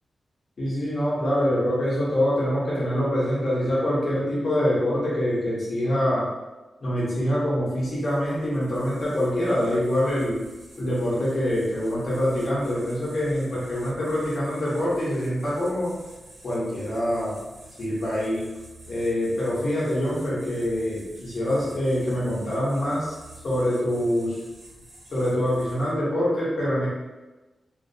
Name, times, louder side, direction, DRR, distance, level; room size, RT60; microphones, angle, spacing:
voice 1, 0.6-6.2 6.8-10.4 10.8-15.9 16.4-17.3 17.8-18.4 18.9-23.2 23.4-24.4 25.1-26.9, equal, 50° left, -7 dB, 1.0 m, -25 dB
sound 1, 7.8-26.1, right 1 dB, 80° right, 0.7 m, -49 dB
2.4 x 2.4 x 2.7 m, 1.1 s
wide cardioid pair, 180°, 0 cm